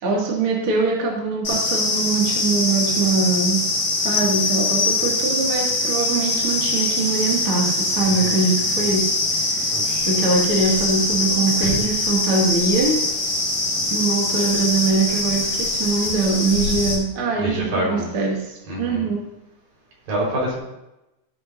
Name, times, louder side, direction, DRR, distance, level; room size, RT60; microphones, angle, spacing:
voice 1, 0.0-3.6 4.0-9.7 10.1-13.0 13.9-19.2, right 3 dB, 40° right, -3 dB, 2.9 m, -22 dB
sound 1, 1.4-16.9, left 2 dB, 50° left, 6.2 m, -23 dB
sound 2, 4.1-5.7, left 8 dB, 85° left, 2.3 m, -26 dB
voice 2, 9.7-10.1 11.6-11.8 17.4-18.1 18.7-19.1 20.1-20.6, right 1 dB, 80° right, -4 dB, 6.6 m, -26 dB
15.5 x 12.5 x 2.7 m, 0.92 s
omnidirectional pair, 4.0 m